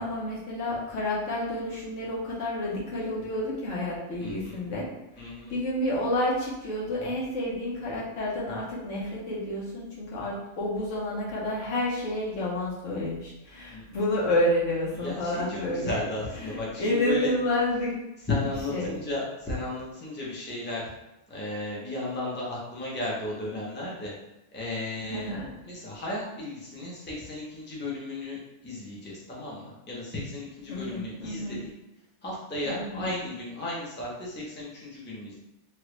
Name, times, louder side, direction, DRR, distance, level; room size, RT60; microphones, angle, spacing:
voice 1, 0.0-4.9 5.2-16.0 16.4-17.9 18.7-18.9 25.0-25.5 30.7-31.6 32.6-33.1, left 1 dB, 80° left, -5 dB, 1.3 m, -30 dB
voice 2, 4.2-4.5 5.2-5.5 13.7-13.8 15.0-17.3 18.3-20.9 21.3-24.1 24.5-25.3 25.6-31.6 32.2-35.4, left 1 dB, 10° left, -5 dB, 0.6 m, -34 dB
3.2 x 2.5 x 3.0 m, 0.94 s
omnidirectional pair, 1.3 m